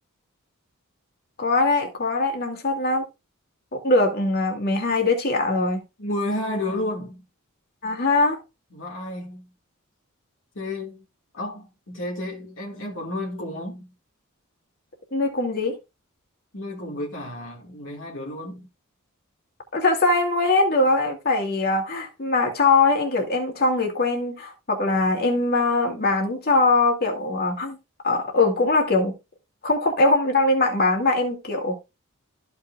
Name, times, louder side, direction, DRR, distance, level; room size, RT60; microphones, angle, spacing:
voice 1, 1.4-3.0 3.7-5.8 7.8-8.4 15.1-15.8 19.7-27.8 28.0-29.1 29.6-31.8, left 2 dB, 45° left, 2.4 m, -21 dB
voice 2, 6.0-7.2 8.7-9.5 10.5-11.1 11.3-13.9 16.5-18.7, left 1 dB, 60° left, 2.0 m, -31 dB
14.0 x 5.7 x 2.4 m
head